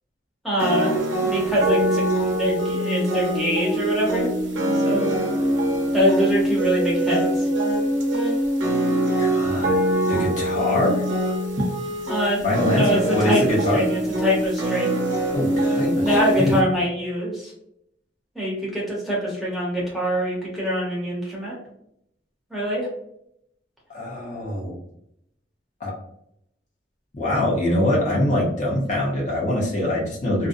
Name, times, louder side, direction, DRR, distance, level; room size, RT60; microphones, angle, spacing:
voice 1, 0.4-0.9 1.2-4.3 4.7-5.1 5.9-7.5 8.2-8.3 12.1-15.0 16.0-17.5 18.4-21.6 22.5-22.9, equal, ahead, -6 dB, 0.7 m, -24 dB
sound 1, 0.6-16.6, right 1 dB, 80° right, 0.7 m, -23 dB
voice 2, 9.2-9.7 10.1-11.0 12.4-13.8 15.3-16.6 23.9-24.8 25.8-25.9 27.1-30.5, left 1 dB, 40° left, -3 dB, 0.6 m, -23 dB
2.5 x 2.0 x 2.4 m, 0.76 s
head